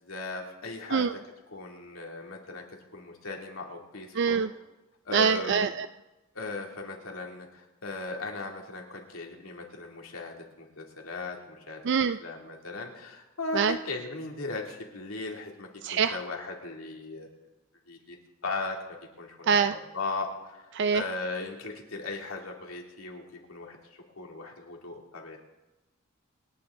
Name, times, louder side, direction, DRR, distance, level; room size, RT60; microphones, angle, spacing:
voice 1, 0.0-1.1 1.5-2.6 2.9-4.4 5.1-5.6 6.3-11.8 12.2-17.4 17.9-18.2 18.4-18.8 19.2-20.6 20.9-23.2 23.5-23.8 24.2-25.4, left 3 dB, 85° left, 1 dB, 2.6 m, -37 dB
voice 2, 4.1-4.5 5.1-5.9 11.8-12.2 13.5-13.7 15.8-16.2 19.5-19.7 20.7-21.0, right 6 dB, 55° right, 11 dB, 0.4 m, -24 dB
27.5 x 9.6 x 3.8 m, 1.0 s
head